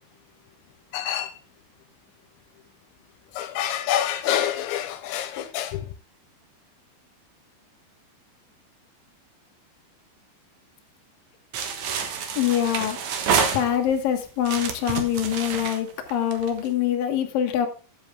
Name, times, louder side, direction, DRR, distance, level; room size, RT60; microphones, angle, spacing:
voice 1, 0.9-1.3 3.4-5.8, left 11 dB, 85° left, 3.2 m, -27 dB
sound 1, 11.5-14.0 14.4-16.7, right 6 dB, 80° right, 1.6 m, -28 dB
voice 2, 12.4-13.0 13.5-17.7, left 10 dB, 65° left, 2.7 m, -24 dB
10.5 x 7.5 x 3.5 m
omnidirectional pair, 5.1 m